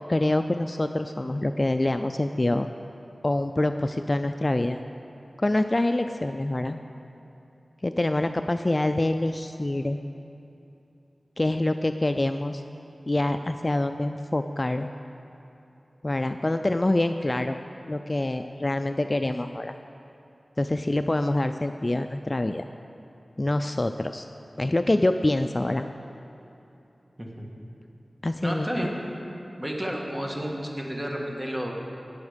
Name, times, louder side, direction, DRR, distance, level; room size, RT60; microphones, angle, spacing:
voice 1, 0.1-2.7 3.2-4.8 5.4-6.8 7.8-10.0 11.4-12.6 13.1-14.9 16.0-17.6 17.9-19.7 20.6-22.7 23.4-24.3 24.6-25.9 28.2-28.7, left 1 dB, 30° left, 8 dB, 0.3 m, -25 dB
voice 2, 28.4-28.9 29.6-31.7, equal, 15° right, -1 dB, 1.7 m, -31 dB
18.0 x 7.2 x 5.1 m, 2.9 s
wide cardioid pair, 80°, 0 cm